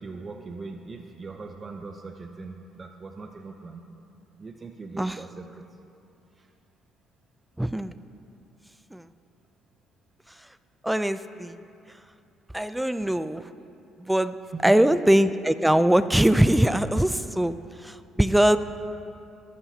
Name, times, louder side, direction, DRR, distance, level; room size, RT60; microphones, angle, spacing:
voice 1, 0.0-3.8 4.4-5.6 6.4-6.5 14.5-14.6, right 4 dB, 35° right, 5 dB, 0.7 m, -40 dB
voice 2, 7.6-7.9 8.9-9.0 10.3-10.5 10.8-11.6 12.5-13.5 14.0-14.4 14.6-18.6, right 1 dB, 5° right, 13 dB, 0.4 m, -22 dB
20.0 x 11.5 x 2.8 m, 2.7 s
supercardioid pair, 75°, 0 cm